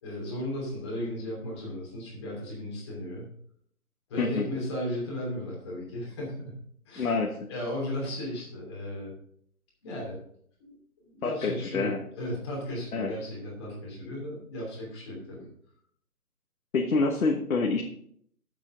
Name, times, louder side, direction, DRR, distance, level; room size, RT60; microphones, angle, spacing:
voice 1, 0.0-3.2 4.1-6.6 6.8-7.1 7.5-9.1 9.8-10.2 10.6-10.7 11.0-15.5, left 1 dB, 20° left, -4 dB, 2.9 m, -35 dB
voice 2, 7.0-7.5 11.2-12.0 12.9-13.1 16.7-17.8, left 3 dB, 65° left, 2 dB, 1.3 m, -27 dB
11.0 x 7.4 x 3.8 m, 0.66 s
hypercardioid pair, 170°, 44 cm